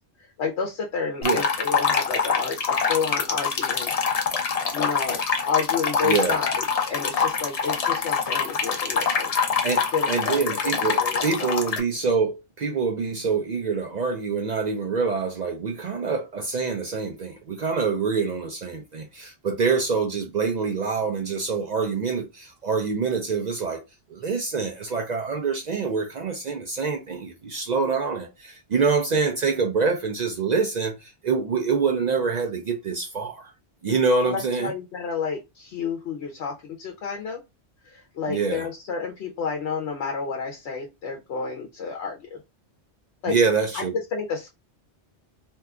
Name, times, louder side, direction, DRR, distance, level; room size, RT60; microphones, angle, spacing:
voice 1, 0.2-3.9 4.7-9.3 9.9-11.6 34.2-37.4 37.8-42.4 43.2-43.4 43.7-43.8 44.1-44.5, left 5 dB, 75° left, 0.9 m, -30 dB
sound 1, 1.2-11.8, left 5 dB, 50° left, 0.5 m, -25 dB
voice 2, 6.0-6.4 9.6-23.8 24.1-33.5 33.8-34.7 38.3-38.7 43.3-43.9, right 5 dB, 60° right, 0.5 m, -25 dB
2.7 x 2.2 x 3.5 m
omnidirectional pair, 1.1 m